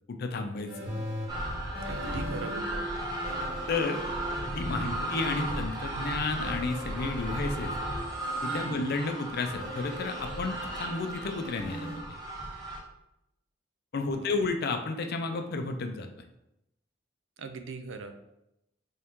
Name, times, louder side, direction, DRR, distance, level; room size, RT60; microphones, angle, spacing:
voice 1, 0.1-0.9 3.7-4.0 4.5-7.7 8.4-12.0 13.9-16.1, left 3 dB, 55° left, 6 dB, 0.4 m, -32 dB
sound 1, 0.7-2.6 3.2-5.6 6.4-8.8 9.6-12.0, equal, 55° right, 1.4 m, -41 dB
sound 2, 1.3-12.8, right 1 dB, 20° right, 0.9 m, -35 dB
voice 2, 1.8-2.8 4.8-5.1 8.6-8.9 14.1-14.4 17.4-18.1, right 4 dB, 75° right, 8 dB, 0.4 m, -40 dB
3.6 x 2.9 x 3.5 m, 0.86 s
head